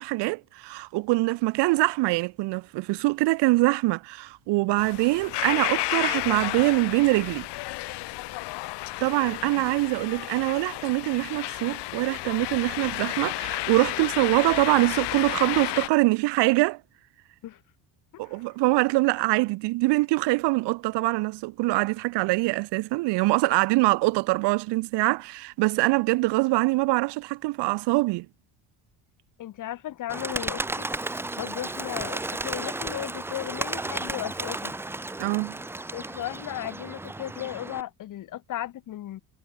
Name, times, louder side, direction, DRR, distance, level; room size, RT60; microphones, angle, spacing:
voice 1, 0.0-7.5 9.0-16.8 18.2-28.3 35.2-35.6, right 22 dB, 75° right, 1.7 m, -24 dB
sound 1, 4.8-15.9, left 20 dB, 75° left, 5.6 m, -32 dB
voice 2, 29.4-30.9 31.4-34.7 35.9-39.2, left 13 dB, 45° left, 6.3 m, -35 dB
Bird, 30.1-37.8, right 2 dB, 5° right, 0.8 m, -33 dB
cardioid pair, 170°, 41 cm